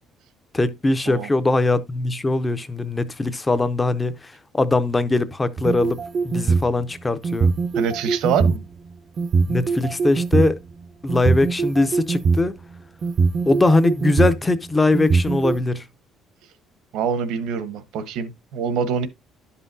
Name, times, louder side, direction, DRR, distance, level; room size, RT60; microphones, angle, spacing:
voice 1, 0.5-6.0 6.2-7.5 9.5-10.6 11.0-12.5 13.5-15.8, left 2 dB, 15° left, 0.5 m, -21 dB
sound 1, 5.6-6.7 7.2-8.5 9.2-10.5 11.1-12.5 13.0-14.4 14.9-15.6, right 4 dB, 35° right, 0.5 m, -21 dB
voice 2, 7.7-8.6 16.9-19.1, right 7 dB, 80° right, 1.0 m, -25 dB
11.5 x 5.6 x 2.6 m
cardioid pair, 155°, 0 cm